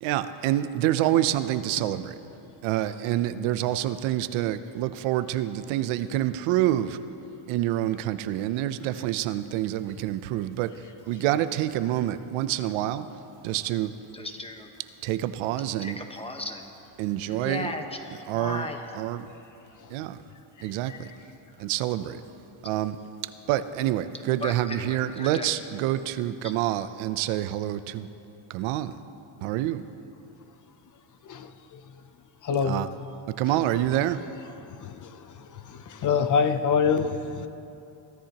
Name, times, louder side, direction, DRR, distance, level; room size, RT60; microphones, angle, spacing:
voice 1, 0.0-2.2 2.6-7.0 7.5-13.1 13.4-14.0 15.0-16.0 17.0-17.7 18.3-18.7 18.9-19.3 19.9-20.2 20.6-21.1 21.6-22.2 22.6-23.0 23.5-28.1 28.5-28.9 29.4-29.8 32.6-32.9 33.3-34.2, right 13 dB, 90° right, 0.7 m, -27 dB
voice 2, 14.1-14.7 15.8-16.7 17.3-17.8 18.3-18.8 24.4-25.5, left 2 dB, 10° left, 1.1 m, -36 dB
voice 3, 31.3-31.8 32.4-32.9 34.8-35.1 35.7-37.5, left 6 dB, 40° left, 0.6 m, -25 dB
22.5 x 13.0 x 2.9 m
cardioid pair, 120°, 47 cm